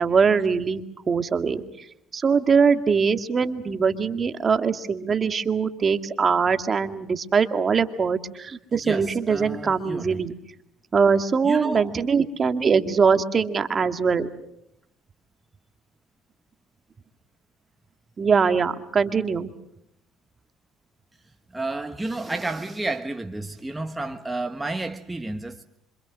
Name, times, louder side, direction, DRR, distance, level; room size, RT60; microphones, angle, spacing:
voice 1, 0.0-1.6 2.1-10.3 10.9-14.3 18.2-19.5, right 5 dB, 35° right, 2.0 m, -22 dB
voice 2, 8.7-10.2 11.4-12.0 21.5-25.6, right 2 dB, 10° right, 1.3 m, -31 dB
27.0 x 26.0 x 6.3 m
supercardioid pair, 90°, 0 cm